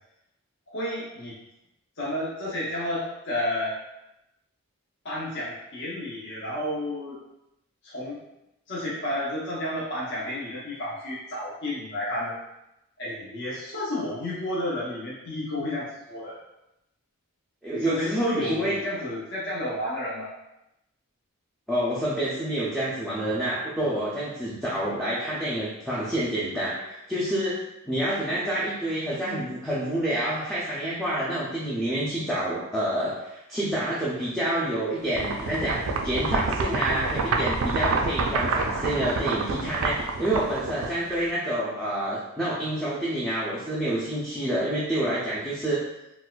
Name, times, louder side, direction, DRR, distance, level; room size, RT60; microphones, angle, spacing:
voice 1, 0.7-1.4 2.0-3.8 5.0-7.2 7.8-8.2 8.7-12.4 13.0-16.4 17.7-20.3, left 1 dB, 50° left, -8 dB, 0.7 m, -31 dB
voice 2, 17.6-18.8 21.7-45.8, right 1 dB, ahead, -8 dB, 0.4 m, -28 dB
sound 1, 35.1-41.3, right 3 dB, 65° right, 0.3 m, -27 dB
4.0 x 2.3 x 2.2 m, 0.88 s
head